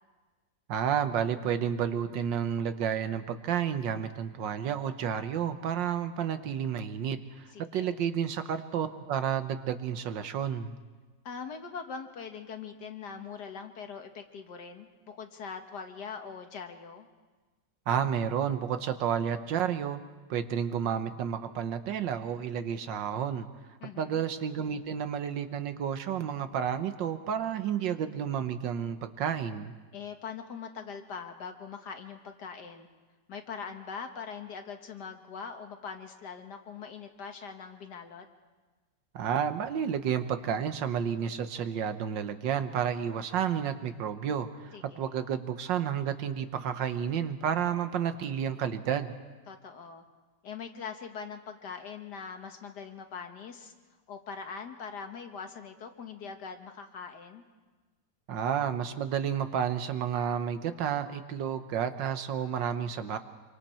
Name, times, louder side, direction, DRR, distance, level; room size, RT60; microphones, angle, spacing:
voice 1, 0.7-10.8 17.9-20.0 20.3-23.5 24.0-29.7 39.1-49.1 58.3-63.2, right 8 dB, 85° right, 9 dB, 1.7 m, -31 dB
voice 2, 7.5-8.0 11.2-17.1 23.8-24.2 29.9-32.9 33.3-38.3 44.7-45.1 49.5-50.0 50.4-53.7 54.1-57.4, left 6 dB, 65° left, 5 dB, 1.9 m, -42 dB
26.0 x 24.0 x 4.4 m, 1.3 s
omnidirectional pair, 1.9 m